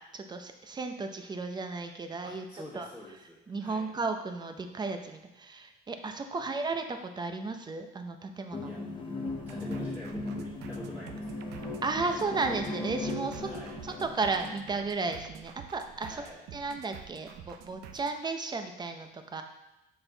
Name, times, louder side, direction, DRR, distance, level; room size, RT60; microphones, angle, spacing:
voice 1, 0.1-2.4 2.7-2.9 3.5-8.7 11.8-13.5 13.8-16.2 16.5-19.4, right 3 dB, 25° right, 6 dB, 0.6 m, -34 dB
voice 2, 2.2-3.9 8.6-8.8 9.5-11.7 13.4-13.8 16.0-16.4, equal, 10° right, -10 dB, 2.0 m, -47 dB
sound 1, 8.5-14.6, left 2 dB, 30° left, 1.1 m, -37 dB
sound 2, 9.3-18.2, right 9 dB, 80° right, 0.6 m, -48 dB
6.6 x 4.4 x 3.9 m, 0.93 s
cardioid pair, 110°, 17 cm